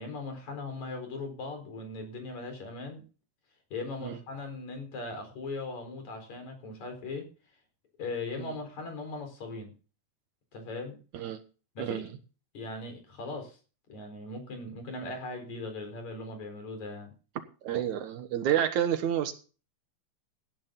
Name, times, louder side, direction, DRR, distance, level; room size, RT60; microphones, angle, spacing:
voice 1, 0.0-3.0 3.7-7.3 8.0-9.7 10.5-11.0 11.8-12.0 12.5-13.6 13.9-17.1, left 3 dB, 65° left, 5 dB, 5.8 m, -39 dB
voice 2, 11.8-12.1 17.6-19.3, right 10 dB, 75° right, 9 dB, 2.7 m, -29 dB
16.5 x 10.5 x 3.9 m, 0.35 s
omnidirectional pair, 3.5 m